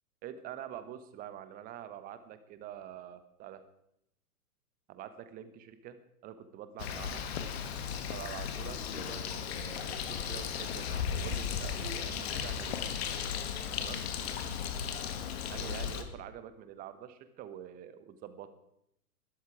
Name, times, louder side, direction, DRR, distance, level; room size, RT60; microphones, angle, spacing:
voice 1, 0.2-3.6 4.9-6.0 6.2-7.2 8.1-12.8 13.8-14.0 15.5-18.5, right 10 dB, 20° right, 11 dB, 1.2 m, -46 dB
Bird, 6.8-16.0, left 7 dB, 40° left, 2.0 m, -36 dB
20.5 x 13.0 x 4.9 m, 0.78 s
figure-of-eight pair, 115°, 46 cm